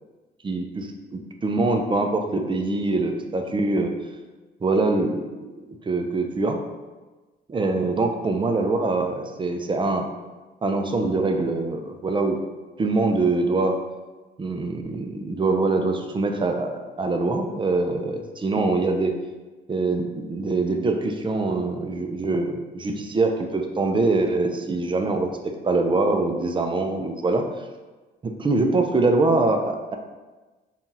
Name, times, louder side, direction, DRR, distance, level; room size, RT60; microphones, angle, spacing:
voice 1, 0.4-3.9 4.6-5.2 5.8-6.6 7.5-10.1 10.6-12.4 12.8-13.8 14.4-19.2 19.7-27.5 28.4-30.0, right 3 dB, 25° right, 5 dB, 0.5 m, -24 dB
5.6 x 2.4 x 2.7 m, 1.2 s
cardioid pair, 90°, 20 cm